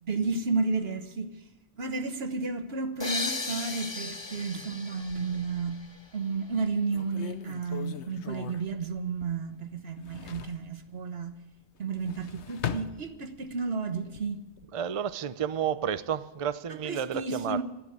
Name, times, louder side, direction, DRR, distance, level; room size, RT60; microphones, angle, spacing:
voice 1, 0.0-1.3 1.8-5.8 6.1-11.4 11.8-14.4 16.7-17.6, right 4 dB, 65° right, 1.5 m, -32 dB
sound 1, 3.0-6.6, left 3 dB, 25° left, 0.9 m, -37 dB
sound 2, 5.0-5.9 6.5-6.6 6.9-9.6 9.8-10.7 11.8-13.6 14.0-14.7, left 8 dB, 80° left, 1.1 m, -40 dB
voice 2, 14.7-17.6, right 8 dB, 40° right, 0.6 m, -31 dB
13.0 x 12.0 x 8.8 m
omnidirectional pair, 1.1 m